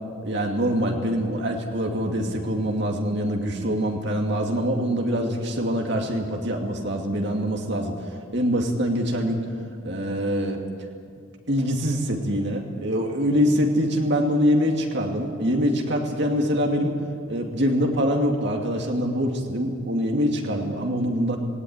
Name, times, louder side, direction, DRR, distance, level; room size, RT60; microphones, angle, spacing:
voice 1, 0.2-8.0 8.3-9.4 9.8-10.6 11.5-17.0 17.3-21.4, equal, 55° right, 2 dB, 2.5 m, -24 dB
19.5 x 18.0 x 9.7 m, 2.3 s
head